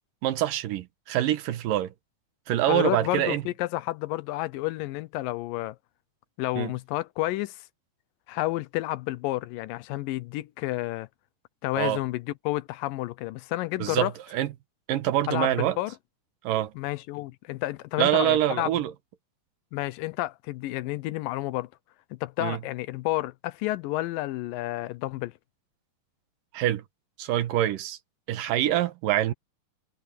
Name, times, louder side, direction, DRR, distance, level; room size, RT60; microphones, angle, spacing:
voice 1, 0.2-1.9 2.5-3.4 6.6-6.7 11.8-12.0 13.8-14.5 14.9-15.8 16.4-16.7 18.0-18.9 22.4-22.6 26.5-26.8 27.2-28.0 28.3-29.3, right 13 dB, 75° right, 2.8 m, -25 dB
voice 2, 2.7-5.8 6.4-7.6 8.3-11.1 11.6-14.1 15.3-15.9 16.8-18.7 19.7-21.7 22.1-25.3, left 17 dB, 80° left, 2.4 m, -30 dB
omnidirectional pair, 4.0 m